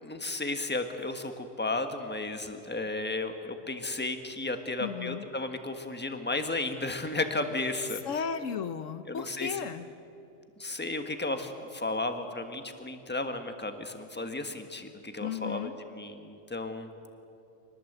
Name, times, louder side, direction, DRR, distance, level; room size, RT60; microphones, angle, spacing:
voice 1, 0.0-8.0 9.1-9.6 10.6-16.9, left 2 dB, 10° left, 6 dB, 1.3 m, -34 dB
voice 2, 4.8-5.2 8.0-9.9 15.2-15.7, left 7 dB, 75° left, 11 dB, 1.2 m, -35 dB
25.5 x 19.5 x 8.0 m, 2.8 s
omnidirectional pair, 1.3 m